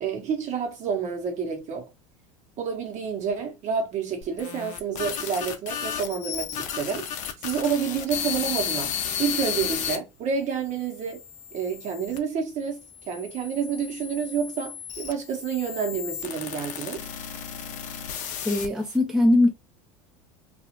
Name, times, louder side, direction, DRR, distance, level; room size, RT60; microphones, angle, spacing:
voice 1, 0.0-1.9 2.6-7.0 7.4-8.9 9.2-11.2 11.5-12.8 13.1-17.0, right 6 dB, 45° right, 1.1 m, -29 dB
sound 1, 4.2-10.0 10.6-12.2 13.0-19.0, left 8 dB, 45° left, 0.6 m, -33 dB
voice 2, 18.4-19.5, left 2 dB, 5° right, 0.6 m, -20 dB
2.5 x 2.4 x 2.9 m
hypercardioid pair, 80°, 17 cm